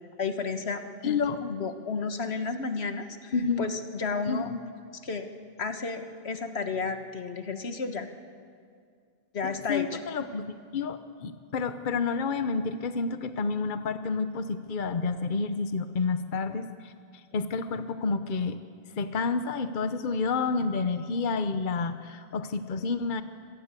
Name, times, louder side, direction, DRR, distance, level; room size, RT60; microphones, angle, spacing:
voice 1, 0.2-4.5 5.0-5.3 5.6-8.1 9.3-10.0, left 4 dB, 85° left, 7 dB, 1.6 m, -32 dB
voice 2, 1.0-1.4 3.3-3.7 4.3-4.6 9.4-10.4 10.7-18.6 19.0-23.2, left 4 dB, 55° left, 10 dB, 1.0 m, -29 dB
26.0 x 18.0 x 8.3 m, 2.2 s
omnidirectional pair, 1.1 m